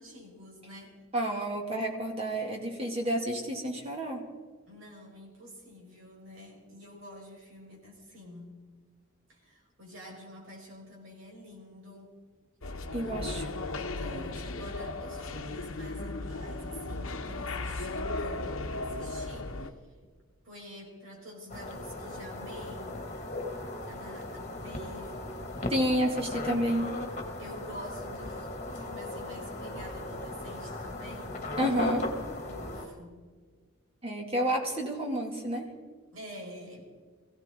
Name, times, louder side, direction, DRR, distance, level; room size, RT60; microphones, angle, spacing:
voice 1, 0.0-1.0 4.7-8.6 9.3-12.1 13.0-19.9 20.4-23.1 23.9-25.6 27.4-33.2 36.1-36.9, equal, 65° right, -1 dB, 5.3 m, -48 dB
voice 2, 1.1-4.2 12.9-13.5 25.7-27.0 31.6-32.0 34.0-35.7, equal, 25° right, 1 dB, 2.5 m, -30 dB
sound 1, 12.6-19.7, left 2 dB, 70° left, 1.1 m, -36 dB
sound 2, 21.5-32.9, left 1 dB, 30° left, 1.9 m, -37 dB
23.0 x 16.5 x 3.8 m, 1.5 s
head